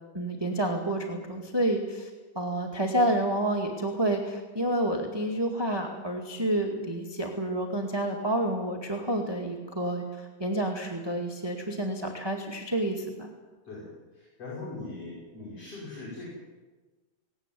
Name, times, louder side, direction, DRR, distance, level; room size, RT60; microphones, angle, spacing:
voice 1, 0.1-13.3, right 1 dB, 10° right, 2 dB, 1.7 m, -29 dB
voice 2, 14.4-16.2, left 3 dB, 50° left, -5 dB, 6.7 m, -40 dB
18.5 x 18.0 x 9.3 m, 1.3 s
omnidirectional pair, 3.5 m